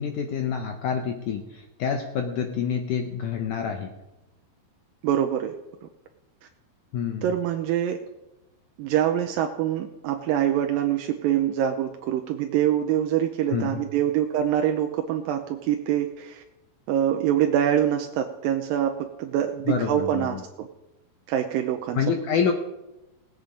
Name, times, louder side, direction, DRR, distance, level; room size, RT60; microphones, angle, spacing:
voice 1, 0.0-3.9 6.9-7.3 13.5-13.9 19.7-20.4 21.9-22.5, left 7 dB, 75° left, 5 dB, 1.8 m, -27 dB
voice 2, 5.0-5.5 7.2-8.0 8.8-16.4 16.9-20.7 21.3-22.0, right 10 dB, 85° right, 4 dB, 2.1 m, -25 dB
18.5 x 8.5 x 5.1 m, 0.95 s
omnidirectional pair, 4.7 m